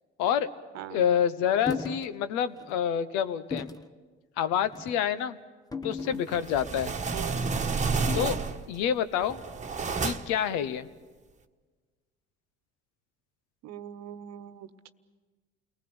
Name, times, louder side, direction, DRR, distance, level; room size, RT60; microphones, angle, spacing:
voice 1, 0.2-0.5 0.9-3.7 4.4-5.4 5.8-6.9 8.1-8.4 8.7-9.4 10.0-10.9, left 9 dB, 65° left, 13 dB, 1.1 m, -27 dB
voice 2, 0.7-1.1 7.1-7.4 13.6-14.9, right 10 dB, 60° right, 12 dB, 1.2 m, -42 dB
sound 1, 1.7-2.1 2.6-2.7 3.5-3.9 4.7-5.0 5.7-6.6 8.1-8.6, left 5 dB, 10° left, 1.0 m, -36 dB
sound 2, 6.3-8.7 9.2-10.5, right 4 dB, 25° right, 1.4 m, -30 dB
29.5 x 19.5 x 7.1 m, 1.4 s
hypercardioid pair, 60°, 30 cm